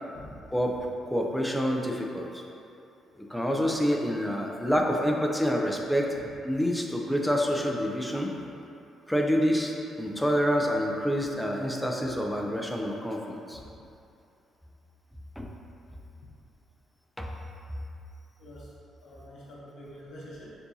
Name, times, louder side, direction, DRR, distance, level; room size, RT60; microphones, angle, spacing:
voice 1, 0.1-0.5 6.2-6.3 13.5-13.6 18.4-18.7 19.0-20.5, equal, 75° left, -6 dB, 0.8 m, -46 dB
voice 2, 1.1-2.4 3.3-6.1 6.4-8.3 9.1-13.6 15.4-15.5 17.2-17.3, equal, 5° left, 0 dB, 0.5 m, -27 dB
6.9 x 2.6 x 2.7 m, 2.6 s
cardioid pair, 90°, 0 cm